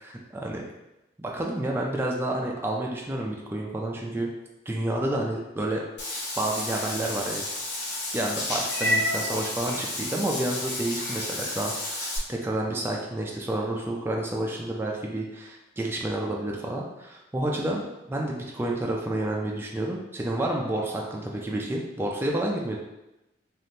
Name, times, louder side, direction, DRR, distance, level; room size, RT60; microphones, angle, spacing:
voice 1, 0.3-0.7 1.2-4.3 4.7-5.8 6.4-7.4 8.1-17.8 18.1-22.8, right 1 dB, 10° right, -1 dB, 0.3 m, -29 dB
Meow / Water / Bathtub (filling or washing), 6.0-12.2, left 1 dB, 65° left, 0.8 m, -31 dB
3.4 x 2.4 x 2.7 m, 0.95 s
head